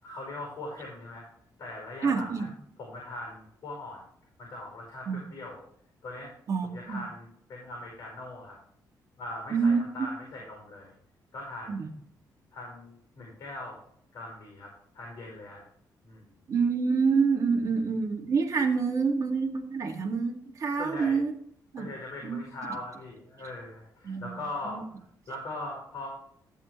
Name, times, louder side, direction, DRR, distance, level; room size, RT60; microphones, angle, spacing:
voice 1, 0.0-1.2 1.6-2.5 2.8-4.0 4.4-5.6 6.0-6.3 6.7-8.6 9.2-10.9 11.3-11.9 12.5-13.8 14.1-15.6 16.0-16.3 20.8-21.2 21.7-24.8 25.3-26.1, left 2 dB, 50° left, -1 dB, 5.1 m, -40 dB
voice 2, 2.0-2.5 5.1-5.2 6.5-7.0 9.5-9.8 11.7-11.9 16.5-21.3 21.7-21.9 22.2-22.4 24.0-24.3 24.7-24.8, right 5 dB, 45° right, 2 dB, 2.0 m, -27 dB
13.5 x 7.8 x 3.2 m, 0.66 s
cardioid pair, 140°, 7 cm